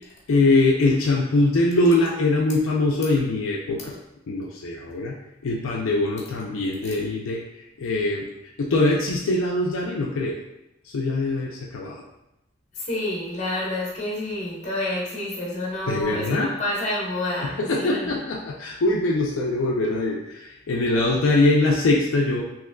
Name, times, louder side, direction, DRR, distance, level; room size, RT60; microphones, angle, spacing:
voice 1, 0.3-4.0 4.3-5.1 5.4-7.4 7.8-8.3 8.6-10.4 10.9-12.0 15.9-16.5 17.7-22.4, left 2 dB, 80° left, -2 dB, 0.4 m, -22 dB
voice 2, 12.7-18.2, left 1 dB, 35° left, -4 dB, 1.0 m, -29 dB
3.5 x 3.0 x 2.2 m, 0.88 s
head